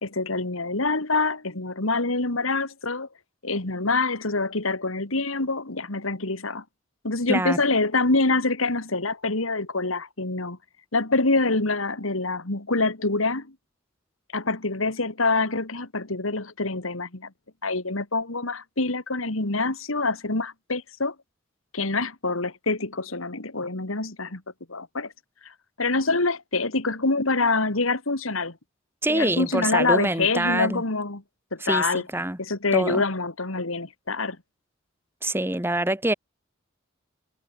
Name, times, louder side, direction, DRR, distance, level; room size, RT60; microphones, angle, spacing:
voice 1, 0.0-3.1 3.4-6.6 7.0-10.6 10.9-13.5 14.3-17.3 17.6-21.1 21.7-24.4 24.7-25.1 25.4-25.5 25.8-28.6 29.1-31.2 31.5-32.0 32.4-34.4, left 3 dB, 90° left, 2.7 m, -25 dB
voice 2, 29.0-30.8 31.6-32.4 32.7-33.0 35.2-36.1, right 1 dB, 10° right, 2.2 m, -25 dB
head